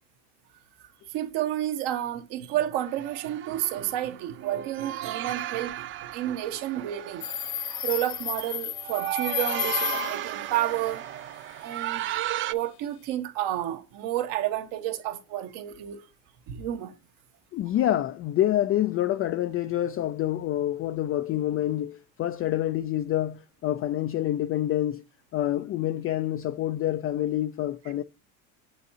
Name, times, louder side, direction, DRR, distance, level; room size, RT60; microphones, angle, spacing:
voice 1, 1.1-7.2 7.7-11.0 11.6-12.0 12.5-16.0 16.5-16.9, right 12 dB, 65° right, 1.6 m, -30 dB
sound 1, 2.8-12.5, right 13 dB, 30° right, 0.4 m, -35 dB
Subway metro underground, 7.2-10.3, left 11 dB, 55° left, 0.9 m, -32 dB
voice 2, 17.5-25.0 25.3-28.0, left 13 dB, 30° left, 0.4 m, -27 dB
7.8 x 6.8 x 2.8 m
supercardioid pair, 95°, 44 cm